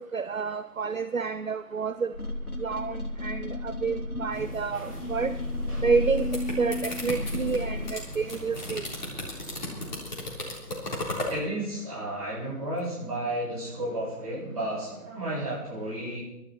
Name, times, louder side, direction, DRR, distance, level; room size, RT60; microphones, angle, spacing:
voice 1, 0.1-2.1 2.6-5.3 5.8-8.9, right 5 dB, 60° right, 12 dB, 0.7 m, -29 dB
sound 1, 2.1-7.9, left 1 dB, 70° left, 3.1 m, -33 dB
sound 2, 4.3-10.0, right 1 dB, 75° right, 4.7 m, -42 dB
sound 3, 6.0-11.4, left 2 dB, 30° left, 3.6 m, -35 dB
voice 2, 11.3-16.2, right 1 dB, 25° right, -6 dB, 7.5 m, -32 dB
23.5 x 13.0 x 4.3 m, 0.92 s
figure-of-eight pair, 160°, 46 cm